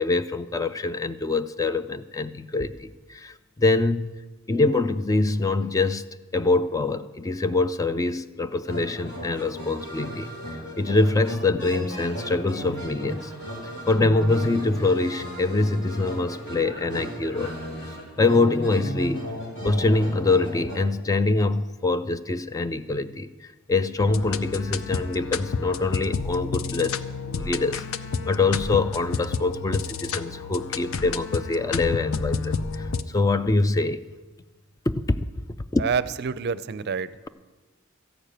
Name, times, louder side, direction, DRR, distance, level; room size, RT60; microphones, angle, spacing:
voice 1, 0.0-4.1 4.5-6.1 6.3-13.3 13.9-17.6 18.2-19.3 19.6-27.0 27.3-27.8 28.3-34.0 34.9-35.2 35.7-35.9, left 3 dB, 15° left, 12 dB, 0.3 m, -24 dB
sound 1, 8.7-20.8, equal, 60° left, 3.5 m, -35 dB
sound 2, 24.0-33.0, left 5 dB, 80° left, 0.6 m, -30 dB
voice 2, 35.8-37.1, right 6 dB, 55° right, 15 dB, 0.5 m, -27 dB
14.0 x 8.9 x 6.6 m, 1.3 s
head